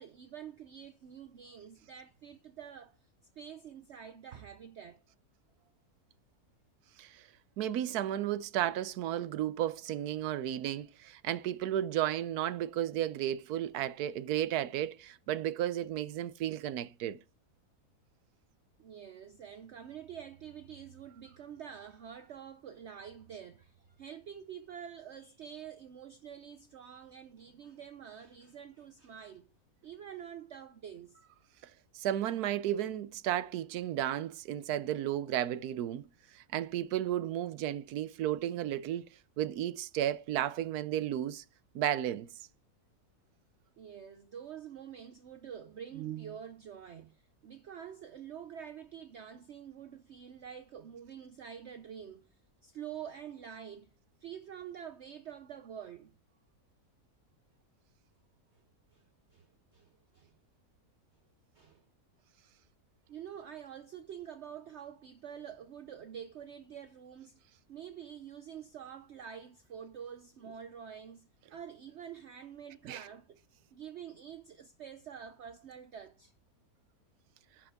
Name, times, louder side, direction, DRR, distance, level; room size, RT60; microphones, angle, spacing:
voice 1, 0.0-3.0 3.4-5.0 18.8-29.5 29.8-31.2 43.8-52.2 52.6-53.9 54.2-56.1 58.9-59.0 59.3-59.5 59.7-60.4 61.5-61.8 63.1-67.4 67.7-73.4 73.7-76.3, right 8 dB, 55° right, 0.9 m, -47 dB
voice 2, 7.6-17.2 31.9-36.1 36.3-39.1 39.4-41.4 41.7-42.3 72.8-73.1, right 12 dB, 85° right, 1.2 m, -33 dB
12.0 x 7.2 x 3.5 m
omnidirectional pair, 1.6 m